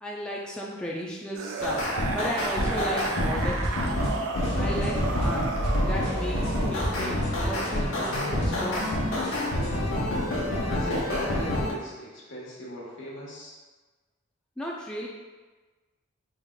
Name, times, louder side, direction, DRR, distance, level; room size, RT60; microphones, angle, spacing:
voice 1, 0.0-1.9 2.1-4.0 4.6-5.5 5.8-9.0 14.6-15.1, equal, 5° left, -4 dB, 0.3 m, -34 dB
sound 1, 1.3-7.3 8.4-8.5, right 3 dB, 90° right, 0.4 m, -34 dB
sound 2, 1.6-11.7, left 1 dB, 85° left, 0.9 m, -28 dB
sound 3, 3.4-4.1 4.4-8.9 9.2-9.9, equal, 35° left, 1.2 m, -34 dB
voice 2, 10.6-13.5, equal, 65° left, -5 dB, 1.2 m, -38 dB
4.7 x 3.5 x 2.3 m, 1.3 s
head